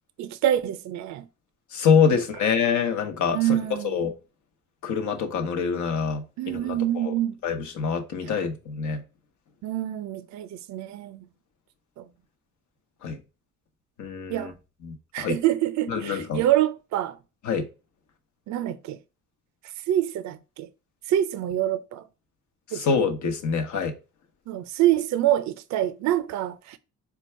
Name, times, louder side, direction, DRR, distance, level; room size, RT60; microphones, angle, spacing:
voice 1, 0.2-1.2 3.3-3.9 6.4-7.4 8.2-8.4 9.6-11.2 12.0-12.1 14.3-14.5 15.1-17.2 18.5-19.0 19.9-20.7 21.1-22.0 22.7-22.8 24.5-26.8, right 12 dB, 65° right, 0.5 m, -26 dB
voice 2, 1.7-3.4 3.8-4.1 4.8-7.1 7.4-9.0 13.0-13.2 14.0-14.5 14.8-15.3 15.9-16.4 17.4-17.7 22.7-23.9, left 6 dB, 75° left, 1.0 m, -25 dB
4.5 x 2.3 x 4.3 m
cardioid pair, 90°, 30 cm